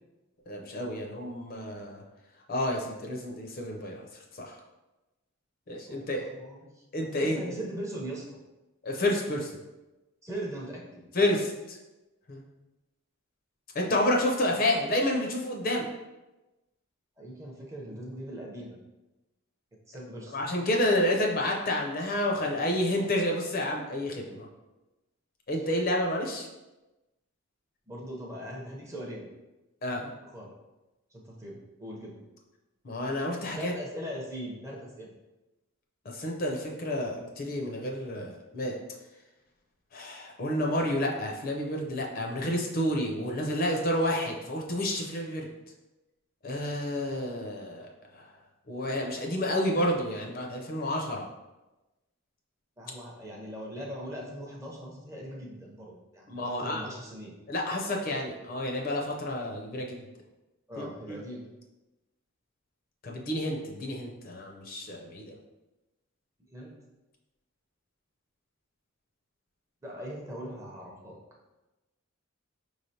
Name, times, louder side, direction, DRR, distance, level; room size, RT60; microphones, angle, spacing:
voice 1, 0.5-2.0 2.5-4.0 4.4-4.5 5.7-6.2 6.9-7.4 8.8-9.5 11.1-11.8 12.3-12.4 13.7-15.9 20.3-24.5 25.5-26.5 29.8-30.1 32.8-33.7 36.1-38.8 39.9-45.5 46.4-48.2 48.7-51.3 56.3-56.9 57.5-60.0 60.8-61.2 63.0-65.3, left 1 dB, 45° left, 0 dB, 0.5 m, -30 dB
voice 2, 5.9-6.8 7.2-8.4 10.2-11.0 17.2-18.8 19.9-20.4 27.9-29.3 30.2-30.5 31.1-32.2 33.6-35.1 52.8-57.3 60.7-61.4 66.5-66.7 69.8-71.2, equal, 15° right, -2 dB, 0.6 m, -40 dB
5.0 x 3.2 x 2.7 m, 1.1 s
head